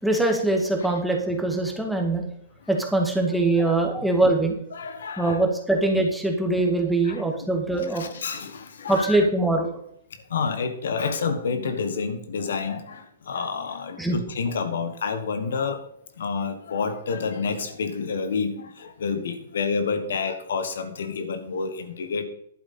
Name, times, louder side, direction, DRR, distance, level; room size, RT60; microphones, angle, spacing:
voice 1, 0.0-2.2 2.7-4.6 5.2-8.0 8.9-9.7 14.0-14.2, right 2 dB, ahead, 1 dB, 2.0 m, -22 dB
voice 2, 4.7-5.4 7.0-7.2 7.8-9.3 10.1-15.8 16.2-22.2, left 5 dB, 75° left, 9 dB, 1.3 m, -29 dB
11.0 x 8.2 x 4.2 m, 0.71 s
hypercardioid pair, 125°, 0 cm